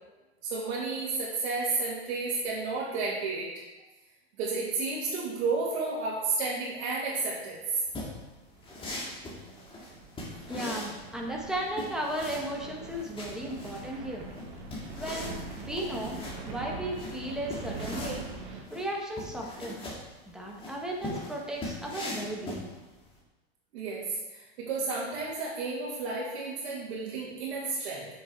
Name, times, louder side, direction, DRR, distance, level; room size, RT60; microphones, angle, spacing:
voice 1, 0.4-3.5 4.4-7.6 23.7-24.0 24.3-28.1, right 3 dB, 65° right, -7 dB, 2.5 m, -32 dB
sound 1, 7.9-23.1, left 1 dB, 15° left, 2.0 m, -41 dB
sound 2, 8.6-18.6, right 3 dB, 50° right, 2.3 m, -43 dB
voice 2, 10.5-14.3 15.0-16.2 16.4-19.8 20.3-22.7, right 1 dB, ahead, -2 dB, 1.4 m, -35 dB
7.9 x 6.5 x 4.6 m, 1.1 s
supercardioid pair, 140°, 32 cm